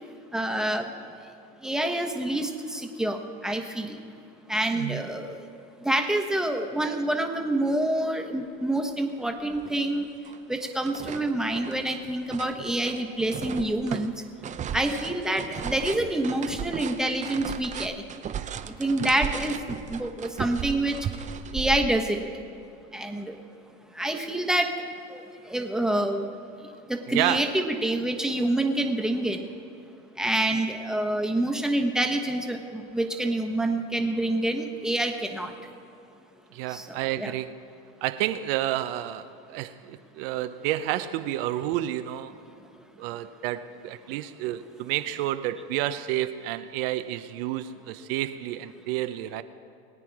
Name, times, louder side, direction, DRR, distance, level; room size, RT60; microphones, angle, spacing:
voice 1, 0.3-0.9 1.6-4.0 4.5-5.3 5.8-10.1 10.5-14.1 14.7-17.9 18.8-21.0 21.5-22.2 22.9-23.4 24.0-24.7 25.1-25.2 25.5-26.3 26.9-29.5 30.2-35.5 36.7-37.3, right 1 dB, ahead, 4 dB, 1.2 m, -27 dB
voice 2, 4.7-5.1 19.0-19.1 27.1-27.5 30.5-30.6 36.5-37.6 38.0-42.4 43.0-49.4, right 13 dB, 70° right, 11 dB, 0.7 m, -30 dB
sound 1, 9.2-9.3 9.6-10.4 10.6-22.3, right 8 dB, 25° right, 0.5 m, -36 dB
21.5 x 9.1 x 4.8 m, 2.5 s
supercardioid pair, 115°, 30 cm